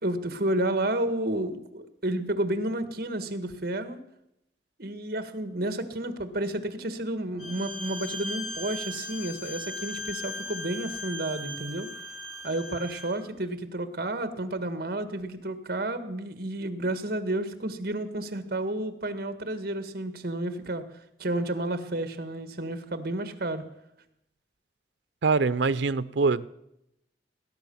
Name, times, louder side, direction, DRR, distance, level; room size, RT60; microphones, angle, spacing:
voice 1, 0.0-4.0 4.8-11.9 12.4-20.8 21.2-23.6, right 1 dB, 55° right, 10 dB, 1.5 m, -31 dB
Bowed string instrument, 7.4-13.2, left 1 dB, 55° left, 2.3 m, -38 dB
voice 2, 25.2-26.5, right 4 dB, 85° right, 16 dB, 0.6 m, -24 dB
19.5 x 10.5 x 7.0 m, 0.84 s
head